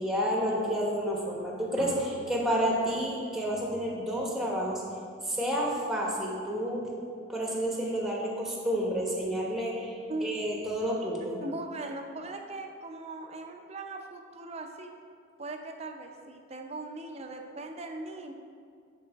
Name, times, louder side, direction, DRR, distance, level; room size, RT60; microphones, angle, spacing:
voice 1, 0.0-4.9 5.2-6.9 7.3-11.4, equal, ahead, -2 dB, 1.0 m, -30 dB
sound 1, 1.8-4.7, right 3 dB, 85° right, 0.8 m, -48 dB
voice 2, 11.4-14.9 15.4-18.3, right 2 dB, 30° right, 4 dB, 0.6 m, -39 dB
10.5 x 4.8 x 3.5 m, 2.3 s
head